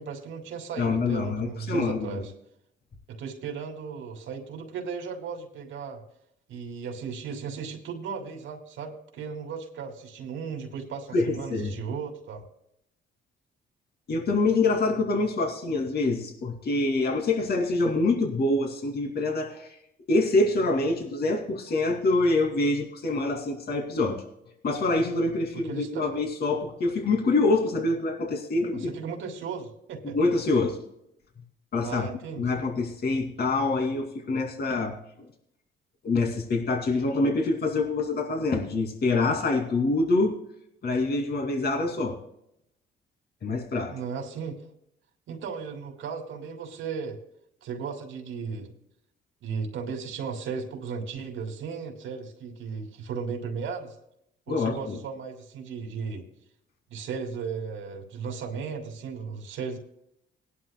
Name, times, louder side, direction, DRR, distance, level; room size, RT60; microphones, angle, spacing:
voice 1, 0.0-2.3 3.1-6.0 6.5-12.4 25.5-26.0 28.7-30.2 31.8-32.6 43.9-44.6 45.3-47.2 47.6-48.8 49.4-54.0 54.5-56.2 56.9-59.8, right 6 dB, 80° right, 3 dB, 2.5 m, -36 dB
voice 2, 0.8-2.2 11.1-11.7 14.1-19.8 20.1-24.2 24.6-28.9 30.0-30.8 31.7-32.1 32.4-34.9 36.0-40.3 40.8-42.2 43.4-43.9 54.5-55.0, left 3 dB, 55° left, 2 dB, 2.6 m, -25 dB
19.5 x 11.0 x 2.2 m, 0.77 s
cardioid pair, 90°, 20 cm